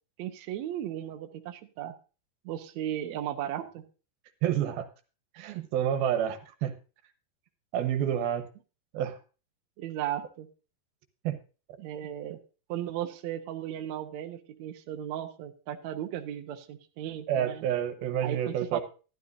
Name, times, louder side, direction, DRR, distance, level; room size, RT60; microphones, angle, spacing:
voice 1, 0.2-2.0 2.4-3.8 9.8-10.5 11.8-12.4 12.7-17.7 18.2-18.8, right 11 dB, 70° right, 6 dB, 1.8 m, -36 dB
voice 2, 4.4-4.9 5.4-6.7 7.7-8.4 8.9-9.2 11.2-11.4 17.3-18.8, right 10 dB, 90° right, 9 dB, 3.0 m, -28 dB
12.5 x 12.5 x 2.7 m, 0.34 s
omnidirectional pair, 4.3 m